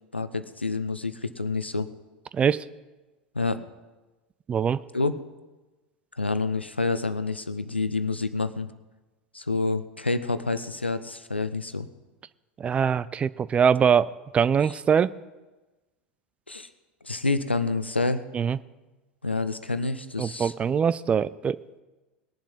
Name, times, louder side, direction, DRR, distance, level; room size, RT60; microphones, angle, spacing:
voice 1, 0.1-1.9 3.3-3.6 4.9-5.1 6.2-8.7 9.3-11.9 16.5-16.7 17.0-18.2 19.2-20.5, left 3 dB, 85° left, 12 dB, 0.7 m, -28 dB
voice 2, 2.3-2.7 4.5-4.8 12.6-15.1 18.3-18.6 20.2-21.6, right 7 dB, 20° right, 18 dB, 0.4 m, -23 dB
20.0 x 7.2 x 5.4 m, 1.2 s
figure-of-eight pair, 80°, 6 cm